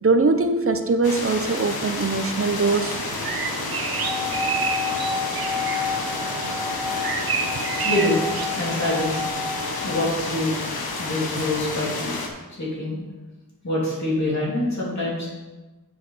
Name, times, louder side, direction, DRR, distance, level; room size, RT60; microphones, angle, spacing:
voice 1, 0.0-3.0, right 3 dB, 40° right, 7 dB, 0.8 m, -21 dB
sound 1, 1.0-12.3, left 3 dB, 90° left, 1.3 m, -30 dB
Bird vocalization bird call bird song, 2.7-9.3, right 5 dB, 80° right, 0.9 m, -30 dB
sound 2, 3.8-10.0, left 5 dB, 10° left, 0.7 m, -31 dB
voice 2, 7.8-8.2 8.5-9.2 9.8-10.6 11.0-12.1 12.5-13.0 13.6-15.3, left 1 dB, 50° left, -7 dB, 3.3 m, -25 dB
7.5 x 6.5 x 5.7 m, 1.2 s
wide cardioid pair, 110°, 36 cm